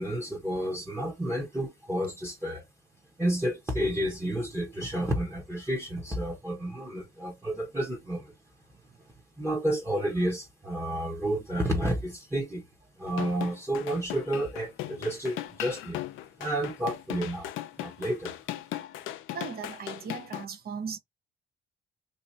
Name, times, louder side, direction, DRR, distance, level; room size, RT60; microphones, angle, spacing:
voice 1, 0.0-2.6 3.2-8.3 9.4-12.7 13.0-16.0 16.4-17.5 17.8-18.4, right 1 dB, 10° right, 0.9 m, -30 dB
sound 1, 13.1-20.5, left 14 dB, 90° left, 0.4 m, -38 dB
voice 2, 19.3-21.0, right 6 dB, 50° right, 0.6 m, -37 dB
2.8 x 2.4 x 4.0 m
cardioid pair, 90°, 20 cm